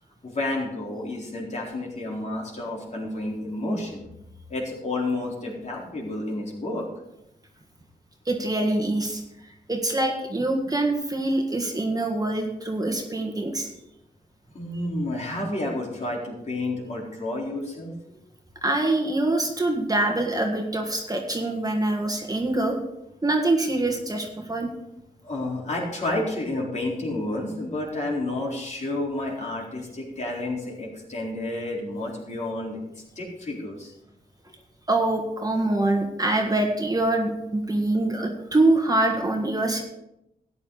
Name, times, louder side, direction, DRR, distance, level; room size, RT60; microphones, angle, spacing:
voice 1, 0.2-4.0 4.5-6.9 14.5-18.2 25.2-33.9, left 2 dB, 50° left, -3 dB, 4.1 m, -30 dB
voice 2, 8.2-9.2 9.7-13.7 18.6-22.8 23.2-24.7 34.9-39.8, right 2 dB, 25° right, 2 dB, 1.7 m, -24 dB
13.5 x 9.5 x 4.0 m, 0.85 s
cardioid pair, 85°, 16 cm